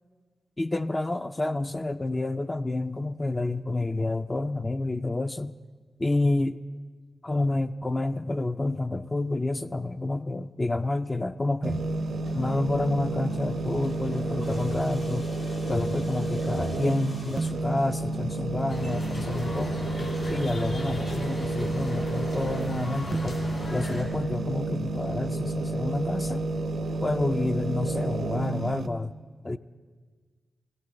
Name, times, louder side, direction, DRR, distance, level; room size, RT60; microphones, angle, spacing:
voice 1, 0.6-5.5 6.0-6.6 7.2-11.8 12.4-15.3 15.7-23.4 23.7-26.5 27.0-29.1 29.4-29.6, left 2 dB, 25° left, 9 dB, 0.3 m, -29 dB
sound 1, 11.6-28.9, right 2 dB, 75° right, 0.6 m, -30 dB
sound 2, 12.0-17.5, left 2 dB, 80° left, 1.9 m, -49 dB
sound 3, 18.7-24.0, left 1 dB, 60° left, 3.8 m, -38 dB
16.5 x 16.5 x 3.2 m, 1.5 s
cardioid pair, 65°, 0 cm